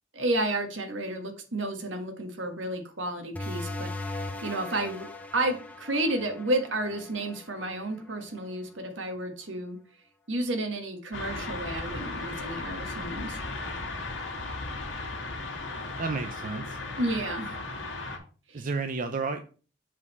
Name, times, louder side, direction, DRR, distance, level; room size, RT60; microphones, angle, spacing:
voice 1, 0.1-5.1 5.3-9.8 10.3-13.4 17.0-17.6 18.5-18.7, right 1 dB, 75° right, 5 dB, 1.5 m, -31 dB
sound 1, 3.3-8.6, left 2 dB, 10° left, 0.8 m, -39 dB
sound 2, 11.1-18.2, left 3 dB, 80° left, 2.0 m, -36 dB
voice 2, 16.0-16.8 18.5-19.4, right 4 dB, 45° right, 6 dB, 0.6 m, -31 dB
7.3 x 4.1 x 5.4 m, 0.37 s
head